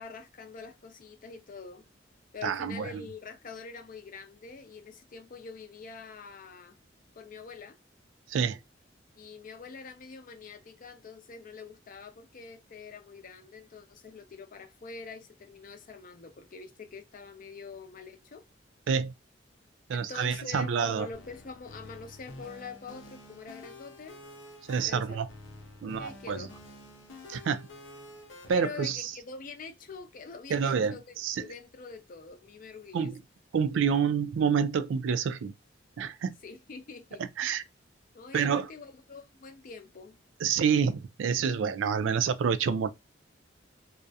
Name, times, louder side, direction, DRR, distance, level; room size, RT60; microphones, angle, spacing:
voice 1, 0.0-1.9 2.3-6.8 7.2-7.8 9.2-18.4 19.9-24.2 24.8-25.2 26.0-26.5 28.5-33.1 36.4-37.2 38.1-40.2, left 4 dB, 45° left, 0.4 m, -45 dB
voice 2, 2.4-3.0 8.3-8.6 18.9-19.1 19.9-21.1 24.7-25.3 25.8-26.5 27.3-27.6 28.5-29.1 30.5-31.4 32.9-33.1 33.5-35.5 36.0-36.3 37.4-37.6 38.3-38.7 40.4-42.9, right 6 dB, 90° right, 0.3 m, -28 dB
sound 1, 21.1-28.5, left 1 dB, 85° left, 0.7 m, -49 dB
2.3 x 2.0 x 2.6 m
head